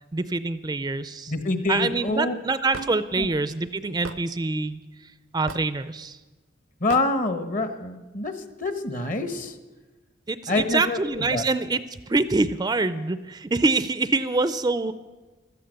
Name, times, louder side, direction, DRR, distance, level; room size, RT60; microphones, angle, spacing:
voice 1, 0.1-1.3 1.7-6.2 10.3-14.9, right 3 dB, 20° right, 13 dB, 0.4 m, -25 dB
voice 2, 1.3-2.3 3.2-3.3 6.8-8.3 8.6-9.5 10.5-11.0 11.3-11.4, left 2 dB, 45° left, 8 dB, 1.2 m, -26 dB
Hammer / Wood, 2.7-2.9 4.0-4.2 5.5-5.8 6.9-7.1, right 5 dB, 85° right, 0.6 m, -35 dB
15.5 x 13.5 x 6.5 m, 1.2 s
head